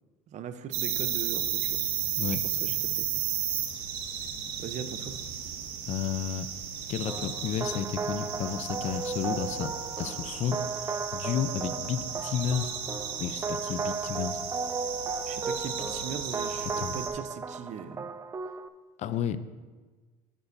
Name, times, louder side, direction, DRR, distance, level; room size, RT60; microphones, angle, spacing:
voice 1, 0.3-1.8 2.4-3.1 4.6-5.2 15.3-18.1, right 8 dB, 50° right, 10 dB, 0.7 m, -40 dB
sound 1, 0.7-17.1, right 9 dB, 80° right, 1.3 m, -34 dB
voice 2, 5.8-6.5 6.9-12.7 13.2-14.4 16.8-17.0 19.0-19.4, left 9 dB, 50° left, 13 dB, 0.6 m, -32 dB
sound 2, 7.1-18.7, right 4 dB, 20° right, 0.4 m, -35 dB
10.5 x 9.4 x 2.7 m, 1.3 s
supercardioid pair, 95°, 15 cm